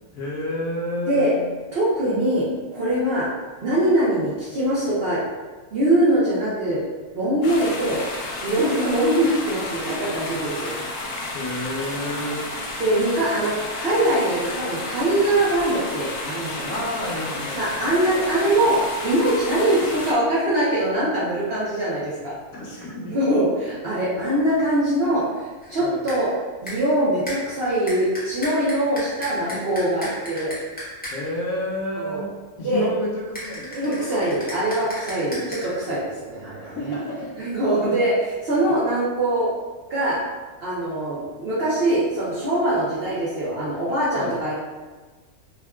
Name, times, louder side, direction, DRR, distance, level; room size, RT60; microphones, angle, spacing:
voice 1, 0.0-1.4 11.3-12.5 16.7-17.7 22.5-23.2 25.8-26.1 31.1-32.3 32.6-34.3 35.3-35.5 36.6-37.4 38.7-38.8 44.1-44.4, left 1 dB, 70° left, -4 dB, 1.0 m, -30 dB
voice 2, 1.7-2.5 2.7-3.3 3.6-5.2 5.7-6.8 7.1-8.0 8.4-10.7 12.8-16.8 17.5-22.4 23.1-26.3 26.6-30.5 32.0-32.2 32.6-32.8 33.7-36.9 37.4-39.5 39.9-40.2 40.6-44.5, right 1 dB, 60° right, -8 dB, 0.7 m, -22 dB
sound 1, 7.4-20.1, left 2 dB, 90° left, 0.5 m, -32 dB
sound 2, 25.6-25.8 26.1-26.3 26.7-27.0 27.3-31.4 33.4-35.7, equal, 10° left, 0.5 m, -36 dB
3.5 x 2.2 x 2.2 m, 1.3 s
omnidirectional pair, 1.6 m